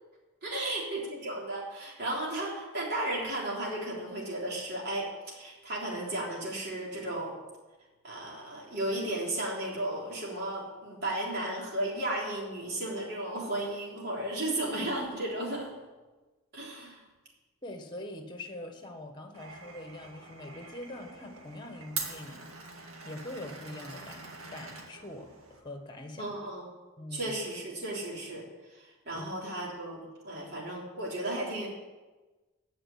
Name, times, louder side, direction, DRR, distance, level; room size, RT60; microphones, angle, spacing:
voice 1, 0.4-7.3 8.0-15.7 16.5-17.0 26.2-26.7 27.1-28.4 28.7-31.7, right 1 dB, 50° right, -4 dB, 3.5 m, -34 dB
voice 2, 17.6-26.4 27.0-27.3 29.1-29.3, left 1 dB, 20° left, 5 dB, 1.4 m, -44 dB
Glass, 19.3-25.6, right 4 dB, 90° right, 2.1 m, -43 dB
15.0 x 5.3 x 8.5 m, 1.2 s
head